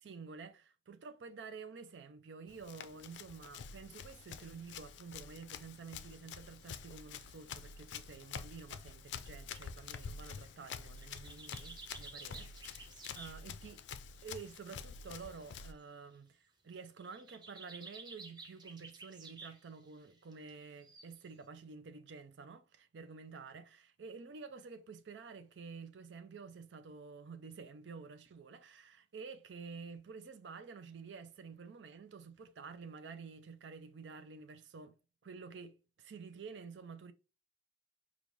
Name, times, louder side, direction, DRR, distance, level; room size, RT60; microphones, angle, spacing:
voice 1, 0.0-12.9 13.2-13.8 14.2-35.0 35.2-37.1, right 5 dB, 85° right, 0.5 m, -50 dB
Run, 2.5-15.7, left 6 dB, 85° left, 0.4 m, -48 dB
sound 1, 5.9-6.1 6.4-6.8 7.3-7.8 8.3-8.4 9.3-9.4 9.7-13.8 14.1-15.8 16.7-21.3, right 3 dB, 25° right, 0.7 m, -54 dB
5.2 x 2.4 x 3.1 m
head